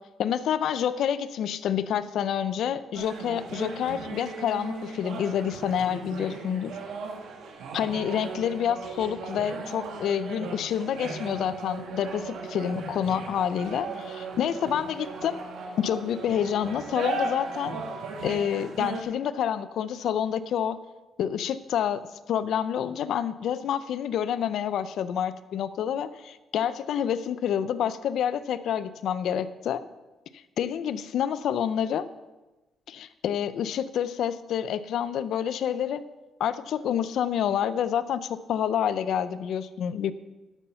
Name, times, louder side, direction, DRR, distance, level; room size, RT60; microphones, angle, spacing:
voice 1, 0.2-6.7 7.7-15.4 15.8-17.7 18.2-20.8 21.2-29.8 30.6-32.1 32.9-36.0 36.4-40.1, left 9 dB, 75° left, 14 dB, 0.5 m, -28 dB
sound 1, 2.9-19.0, right 3 dB, 75° right, 1.7 m, -37 dB
13.0 x 5.7 x 5.6 m, 1.1 s
cardioid pair, 90°, 0 cm